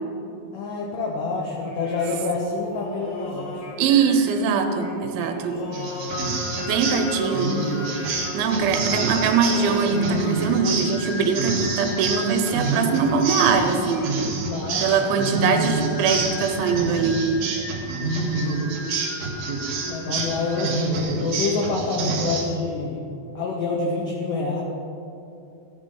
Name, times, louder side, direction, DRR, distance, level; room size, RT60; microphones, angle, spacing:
voice 1, 0.5-3.7 5.5-6.2 14.5-15.1 18.3-18.9 19.9-23.0 23.4-24.6, left 3 dB, 80° left, -1 dB, 1.9 m, -28 dB
Singing, 1.5-21.1, left 1 dB, 65° left, 2.8 m, -36 dB
voice 2, 3.8-5.6 6.7-7.5 8.3-14.2 14.8-17.3, right 6 dB, 80° right, 6 dB, 3.3 m, -22 dB
sound 1, 5.7-22.4, right 3 dB, 60° right, 2.7 m, -28 dB
15.5 x 10.5 x 3.8 m, 2.7 s
omnidirectional pair, 5.3 m